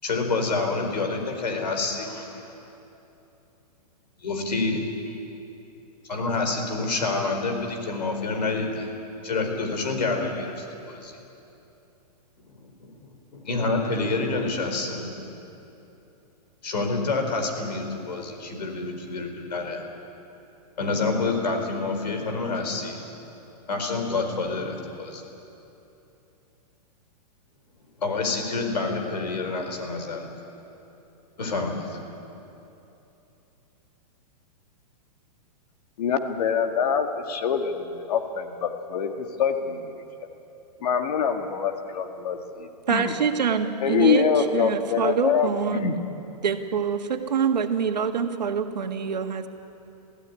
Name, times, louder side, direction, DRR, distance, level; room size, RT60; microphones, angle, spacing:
voice 1, 0.0-2.4 4.2-4.8 5.1-5.2 6.1-8.9 9.2-11.1 12.5-15.2 16.6-19.9 20.8-23.0 23.7-25.2 28.0-30.3 31.4-32.0, left 3 dB, 90° left, 4 dB, 4.4 m, -28 dB
voice 2, 36.0-39.1 39.4-39.8 40.8-43.1 43.8-45.9, left 7 dB, 65° left, 5 dB, 1.9 m, -25 dB
voice 3, 42.9-45.9 46.4-49.5, right 7 dB, 85° right, 6 dB, 1.8 m, -25 dB
22.0 x 15.5 x 9.7 m, 2.9 s
hypercardioid pair, 130°, 21 cm